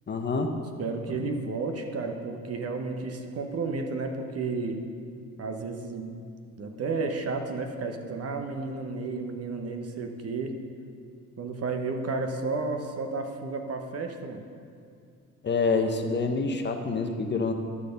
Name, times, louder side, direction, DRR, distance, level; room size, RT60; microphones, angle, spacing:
voice 1, 0.1-0.5 1.2-1.3 15.4-17.5, left 4 dB, 35° left, 5 dB, 0.8 m, -27 dB
voice 2, 0.8-4.8 5.4-6.1 6.6-10.6 11.4-14.4, right 3 dB, 50° right, 5 dB, 1.1 m, -32 dB
11.0 x 6.5 x 5.3 m, 2.3 s
cardioid pair, 100°, 32 cm